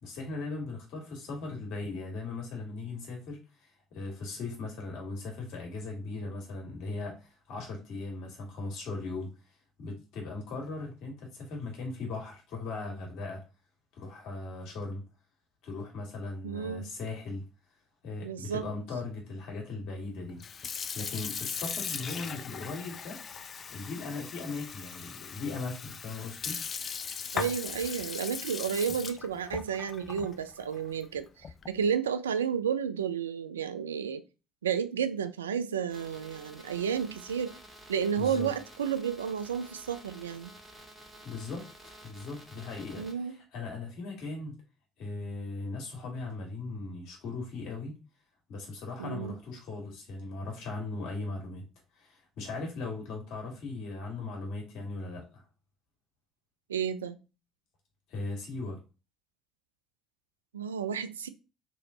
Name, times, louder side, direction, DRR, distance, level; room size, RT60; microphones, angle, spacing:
voice 1, 0.0-13.4 13.9-15.0 15.6-17.4 18.0-20.4 20.9-23.2 23.7-26.6 38.2-38.5 41.2-44.5 45.0-47.9 48.5-51.6 51.9-55.4 58.1-58.8, left 3 dB, 65° left, 1.7 m, -38 dB
voice 2, 16.4-16.9 18.2-18.7 27.3-34.2 34.6-37.5 37.9-40.5 43.0-43.3 49.0-49.3 56.7-57.2 60.5-61.3, right 7 dB, 90° right, 0.3 m, -32 dB
Sink (filling or washing) / Fill (with liquid), 20.3-31.8, left 6 dB, 45° left, 0.4 m, -39 dB
sound 1, 35.9-43.1, right 1 dB, 15° right, 2.0 m, -51 dB
3.3 x 3.0 x 3.7 m
hypercardioid pair, 60°, 0 cm